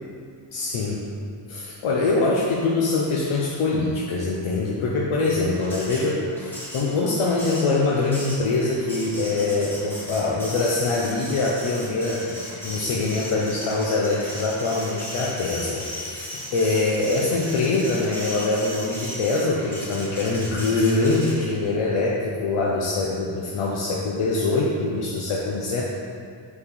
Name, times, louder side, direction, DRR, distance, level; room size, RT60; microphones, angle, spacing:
voice 1, 0.5-1.1 1.5-25.8, left 3 dB, 80° left, -3 dB, 0.9 m, -24 dB
Printer, 5.5-21.6, left 1 dB, 5° left, 1.8 m, -36 dB
7.1 x 4.5 x 5.3 m, 2.2 s
wide cardioid pair, 175°, 49 cm